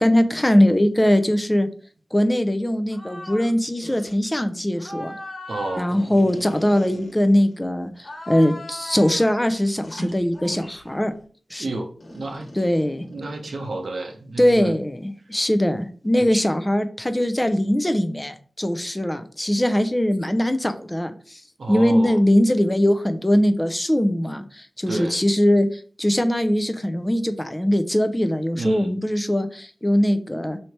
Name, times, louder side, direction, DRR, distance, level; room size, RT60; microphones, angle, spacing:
voice 1, 0.0-1.7 2.1-5.1 5.8-11.1 11.5-11.7 12.6-13.1 14.4-21.4 21.7-30.6, left 1 dB, 15° left, 9 dB, 0.5 m, -21 dB
sound 1, 2.9-3.5 3.8-4.2 4.8-7.5 8.0-9.3 9.8-10.9 12.0-13.8, left 1 dB, 75° left, 1.3 m, -37 dB
voice 2, 5.5-5.9 11.6-12.5 13.1-14.7 16.3-16.5 21.6-22.2 24.9-25.2 28.5-28.9, right 2 dB, 85° right, 2 dB, 0.6 m, -30 dB
3.2 x 2.8 x 4.4 m, 0.43 s
cardioid pair, 50°, 0 cm